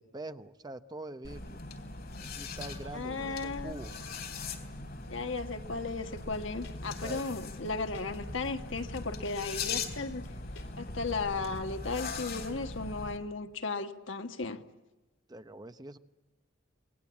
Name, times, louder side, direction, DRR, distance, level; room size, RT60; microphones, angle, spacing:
voice 1, 0.0-1.6 2.2-4.0 7.0-7.3 15.3-16.0, right 2 dB, 20° right, 10 dB, 0.9 m, -44 dB
sound 1, 1.2-13.2, left 3 dB, 55° left, 3.4 m, -40 dB
voice 2, 2.9-3.8 5.1-10.3 10.8-14.6, left 3 dB, 70° left, 7 dB, 1.5 m, -35 dB
sound 2, 6.1-11.6, left 1 dB, 85° left, 4.3 m, -49 dB
27.5 x 20.5 x 8.4 m, 1.1 s
head